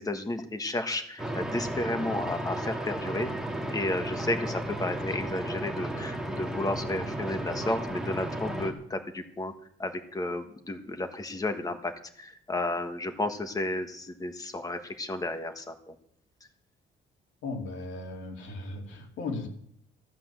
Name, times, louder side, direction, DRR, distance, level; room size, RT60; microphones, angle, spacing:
voice 1, 0.0-3.3 3.7-9.5 9.8-15.9, left 2 dB, 20° left, 7 dB, 1.6 m, -32 dB
sound 1, 1.2-8.7, right 1 dB, 5° right, 2.0 m, -34 dB
voice 2, 17.4-19.5, left 3 dB, 85° left, 2 dB, 3.1 m, -36 dB
14.0 x 9.0 x 7.5 m, 0.66 s
cardioid pair, 140°, 19 cm